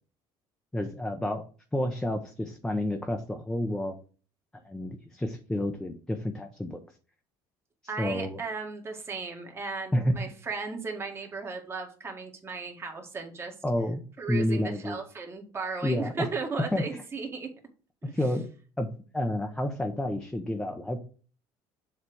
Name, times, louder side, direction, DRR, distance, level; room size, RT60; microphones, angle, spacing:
voice 1, 0.7-1.4 1.7-4.0 4.5-6.8 8.0-8.4 9.9-10.2 13.6-14.0 14.3-15.0 15.8-16.3 16.7-16.8 18.1-18.4 18.8-18.9 19.1-21.0, left 1 dB, 5° left, 4 dB, 0.8 m, -29 dB
voice 2, 7.9-13.5 14.2-17.5 18.0-18.1, right 4 dB, 25° right, 2 dB, 1.8 m, -36 dB
7.1 x 3.3 x 6.2 m, 0.39 s
cardioid pair, 125°, 10 cm